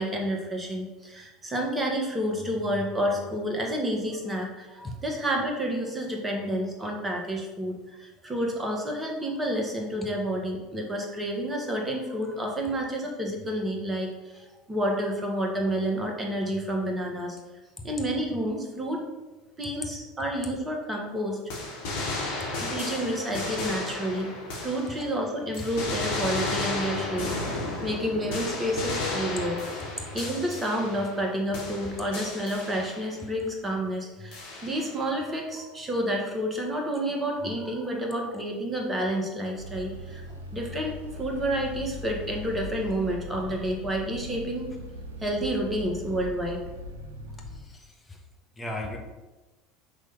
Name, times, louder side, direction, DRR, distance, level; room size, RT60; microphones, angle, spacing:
voice 1, 0.0-17.4 17.8-19.1 19.6-21.4 22.6-24.3 24.6-29.6 30.1-44.7 45.2-46.6, equal, 15° right, 0 dB, 1.5 m, -30 dB
sound 1, 21.5-25.2 25.5-31.3 31.5-33.2 34.3-35.0, left 2 dB, 65° left, 1.5 m, -33 dB
sound 2, 39.5-47.6, left 1 dB, 80° right, 0.8 m, -40 dB
voice 2, 47.5-48.2 48.6-49.0, left 1 dB, 15° left, 1 dB, 1.3 m, -37 dB
6.2 x 3.4 x 5.4 m, 1.2 s
figure-of-eight pair, 75°, 0 cm